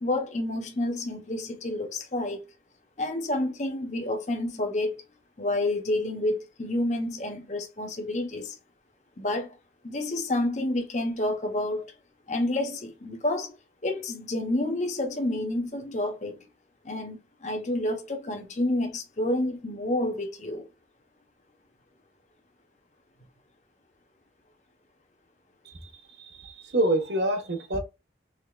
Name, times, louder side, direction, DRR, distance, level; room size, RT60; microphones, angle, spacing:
voice 1, 0.0-2.5 3.0-5.0 5.4-8.6 9.2-9.6 9.8-11.9 12.3-13.6 13.8-16.4 16.8-20.7, left 1 dB, 40° left, 0.8 m, -29 dB
voice 2, 25.6-27.8, right 1 dB, 75° right, 1.0 m, -28 dB
3.6 x 3.4 x 2.3 m
head